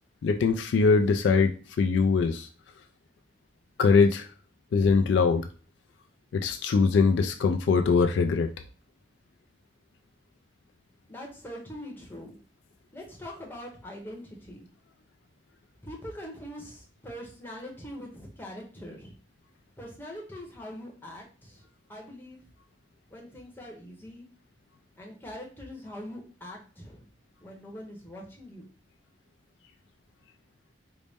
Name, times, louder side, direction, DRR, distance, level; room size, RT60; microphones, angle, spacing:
voice 1, 0.2-2.5 3.8-4.3 4.7-5.4 6.3-8.5, left 4 dB, 70° left, 6 dB, 0.3 m, -22 dB
voice 2, 11.1-12.3 12.9-14.7 15.8-19.1 19.8-21.6 21.9-22.4 23.1-24.2 25.0-27.0 27.4-28.7, equal, 10° left, -2 dB, 0.8 m, -42 dB
4.0 x 2.1 x 3.4 m, 0.37 s
head